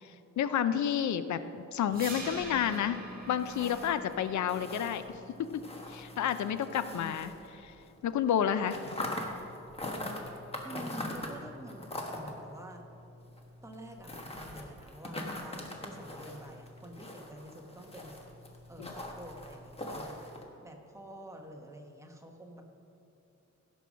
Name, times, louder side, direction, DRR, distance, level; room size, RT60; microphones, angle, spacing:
voice 1, 0.0-1.4 1.7-3.0 3.3-5.0 5.4-7.3 7.7-7.8 8.0-9.0 18.8-18.9, left 9 dB, 75° left, 12 dB, 0.5 m, -30 dB
sound 1, 1.9-7.9 8.2-20.4, left 1 dB, 20° left, 1.2 m, -43 dB
sound 2, 1.9-7.9, right 2 dB, 30° right, 1.8 m, -46 dB
voice 2, 6.8-7.2 10.6-12.9 13.6-18.2 18.7-22.6, right 1 dB, 10° right, 2 dB, 1.0 m, -48 dB
16.0 x 5.4 x 6.2 m, 2.8 s
wide cardioid pair, 155°, 29 cm